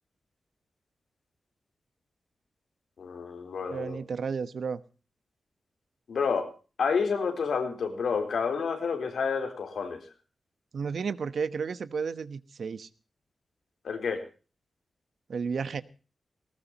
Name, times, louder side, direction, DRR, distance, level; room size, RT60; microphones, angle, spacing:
voice 1, 3.0-4.0 6.1-6.5 6.8-10.0 13.8-14.2, left 5 dB, 80° left, 6 dB, 3.9 m, -29 dB
voice 2, 3.7-4.8 10.7-12.9 15.3-15.8, right 5 dB, 65° right, 14 dB, 1.0 m, -32 dB
19.5 x 19.0 x 2.9 m, 0.35 s
wide cardioid pair, 170°, 0 cm